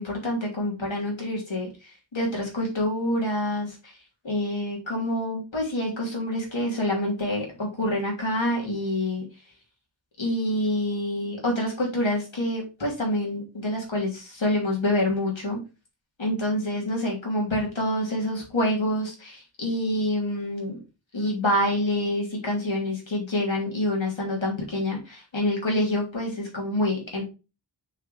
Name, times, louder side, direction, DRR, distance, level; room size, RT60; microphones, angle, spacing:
voice 1, 0.0-3.9 4.2-9.2 10.2-15.6 16.2-20.8 21.1-27.2, left 1 dB, 85° left, -1 dB, 3.1 m, -27 dB
6.2 x 5.2 x 3.4 m, 0.29 s
wide cardioid pair, 60°, 45 cm